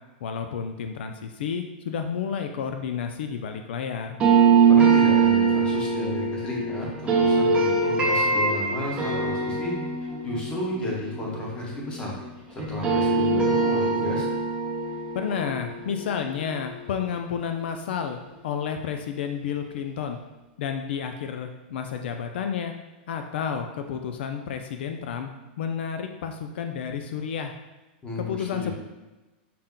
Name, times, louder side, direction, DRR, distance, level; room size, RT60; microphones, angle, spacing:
voice 1, 0.2-4.2 15.1-18.2 18.4-20.2 20.6-22.7 23.1-25.3 25.6-27.5 28.2-28.7, left 7 dB, 75° left, 5 dB, 0.4 m, -31 dB
sound 1, 4.2-12.3 12.6-17.5, right 4 dB, 20° right, 0.7 m, -23 dB
voice 2, 4.7-9.7 10.2-12.1 12.5-14.3 28.0-28.7, left 1 dB, 15° left, -3 dB, 0.9 m, -32 dB
5.6 x 2.1 x 3.7 m, 1.1 s
supercardioid pair, 160°, 6 cm